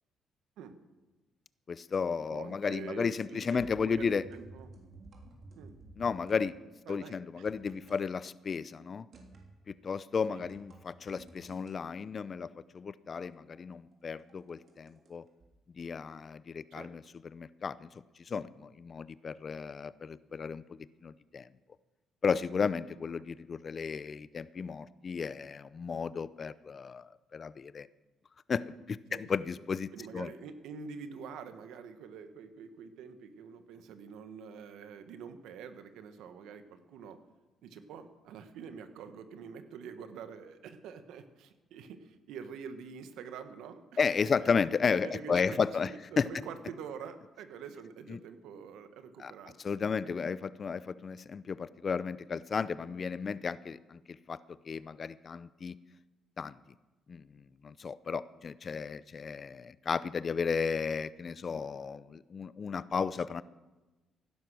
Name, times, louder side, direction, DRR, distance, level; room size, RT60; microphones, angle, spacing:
voice 1, 1.7-4.2 6.0-6.6 6.9-9.1 9.7-12.5 12.7-15.2 15.8-17.9 18.3-20.6 21.0-21.5 22.2-27.9 28.5-30.3 44.0-45.9 46.2-46.3 48.1-48.2 49.2-49.3 49.6-54.4 54.6-55.7 56.4-56.5 57.1-57.2 57.6-63.4, left 5 dB, 45° left, 17 dB, 0.6 m, -33 dB
voice 2, 2.3-4.7 5.5-5.8 6.9-7.5 10.3-10.4 16.7-16.9 29.1-29.3 29.9-37.2 37.6-44.5 44.9-50.1, right 6 dB, 85° right, 9 dB, 1.3 m, -46 dB
sound 1, 3.5-6.4 7.5-8.0 9.1-9.6 10.4-11.7 13.2-15.1 15.4-15.5, right 2 dB, 55° right, 3.3 m, -53 dB
16.0 x 11.5 x 6.3 m, 1.1 s
cardioid pair, 90°, 0 cm